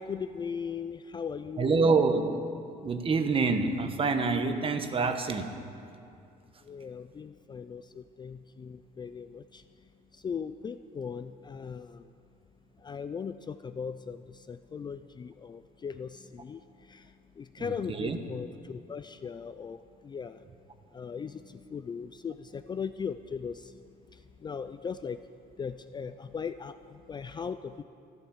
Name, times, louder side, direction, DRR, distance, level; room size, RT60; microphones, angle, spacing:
voice 1, 0.0-2.0 6.6-9.6 10.1-12.1 12.8-19.8 20.0-20.4 20.9-23.8 24.1-25.2 25.6-27.8, left 6 dB, 25° left, 11 dB, 0.4 m, -38 dB
voice 2, 1.6-2.3 2.8-5.5 17.6-18.2, right 4 dB, 30° right, 8 dB, 1.1 m, -26 dB
13.5 x 11.5 x 7.1 m, 2.6 s
cardioid pair, 110°, 17 cm